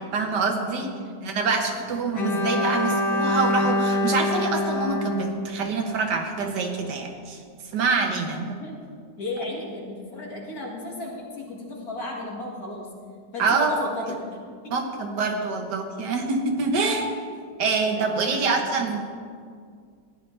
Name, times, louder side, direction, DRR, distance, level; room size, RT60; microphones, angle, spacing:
voice 1, 0.0-0.9 1.2-7.4 7.7-8.5 13.4-13.7 14.7-17.1 17.6-19.0, right 4 dB, 80° right, 4 dB, 1.7 m, -25 dB
voice 2, 0.8-1.2 1.7-2.0 8.2-8.8 9.2-12.9 13.3-14.2 14.6-14.8 17.1-17.3 17.9-18.8, left 2 dB, 60° left, -2 dB, 2.3 m, -35 dB
Bowed string instrument, 2.1-6.2, left 1 dB, 85° left, 1.7 m, -25 dB
14.0 x 10.5 x 3.3 m, 2.1 s
omnidirectional pair, 1.8 m